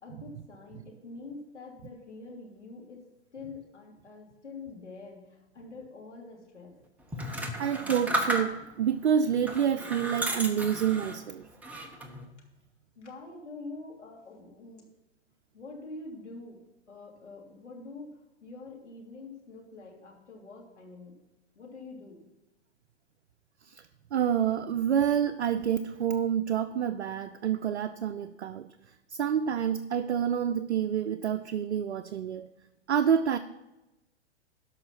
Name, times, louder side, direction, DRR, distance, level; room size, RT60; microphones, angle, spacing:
voice 1, 0.0-3.0 3.3-6.7 12.9-14.8 15.5-16.6 16.9-21.1 21.5-22.3, left 3 dB, 85° left, -1 dB, 3.1 m, -45 dB
sound 1, 7.1-8.8 9.4-11.2 11.6-12.2, right 1 dB, 5° right, 1.0 m, -33 dB
voice 2, 7.6-11.4 23.7-23.8 24.1-28.7 29.1-32.5 32.9-33.4, right 8 dB, 70° right, 8 dB, 0.6 m, -28 dB
12.5 x 5.7 x 5.8 m, 0.97 s
figure-of-eight pair, 115°, 34 cm